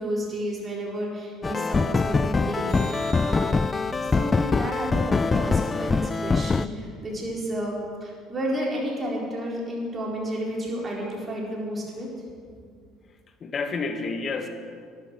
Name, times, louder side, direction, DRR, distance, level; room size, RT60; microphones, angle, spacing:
voice 1, 0.0-12.1, equal, 30° right, -3 dB, 4.2 m, -31 dB
sound 1, 1.4-6.7, left 4 dB, 25° left, 0.4 m, -24 dB
sound 2, 2.7-7.2 13.7-13.8, right 6 dB, 60° right, 3.7 m, -49 dB
voice 2, 13.1-14.5, left 4 dB, 40° left, 7 dB, 1.5 m, -30 dB
13.5 x 11.0 x 6.2 m, 2.1 s
cardioid pair, 100°, 0 cm